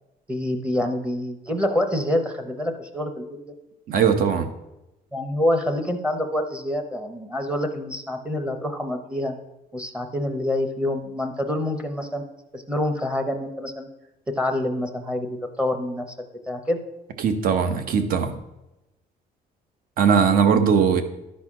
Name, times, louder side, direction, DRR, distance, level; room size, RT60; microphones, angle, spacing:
voice 1, 0.3-3.4 5.1-9.3 9.7-12.2 12.5-13.9 14.4-16.1 16.5-16.8, left 1 dB, 5° right, 4 dB, 0.8 m, -26 dB
voice 2, 3.9-4.5 17.2-18.3 20.0-21.0, right 6 dB, 60° right, 9 dB, 0.9 m, -19 dB
11.5 x 4.2 x 6.0 m, 0.95 s
cardioid pair, 170°, 16 cm